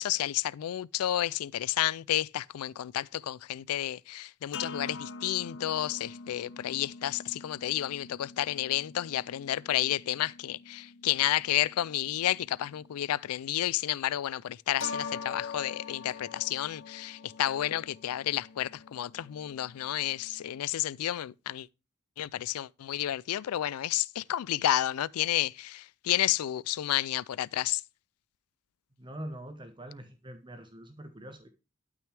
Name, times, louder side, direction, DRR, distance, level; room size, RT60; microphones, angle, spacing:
voice 1, 0.0-21.7 22.2-27.8, left 12 dB, 85° left, 0.4 m, -31 dB
sound 1, 4.5-13.2 14.8-20.6, left 4 dB, 60° left, 0.8 m, -45 dB
voice 2, 29.0-31.5, right 1 dB, 20° right, 1.1 m, -43 dB
12.0 x 6.2 x 3.3 m
head